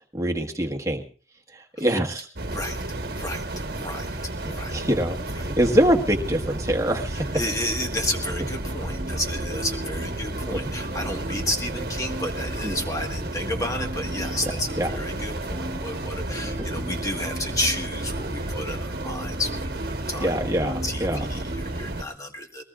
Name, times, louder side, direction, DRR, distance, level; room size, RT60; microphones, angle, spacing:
voice 1, 0.1-1.0 1.8-2.3 4.7-7.3 10.5-10.7 12.6-12.8 14.5-14.9 20.2-21.3, equal, 15° right, 2 dB, 1.6 m, -24 dB
sound 1, 2.4-22.0, right 1 dB, 55° right, 1.4 m, -32 dB
voice 2, 2.5-2.8 3.2-3.4 3.8-4.1 4.5-4.7 7.1-20.3 20.6-22.6, left 1 dB, 20° left, 3 dB, 1.7 m, -31 dB
sound 2, 8.2-21.9, right 1 dB, 35° right, 1.3 m, -40 dB
21.5 x 19.5 x 2.5 m, 0.37 s
head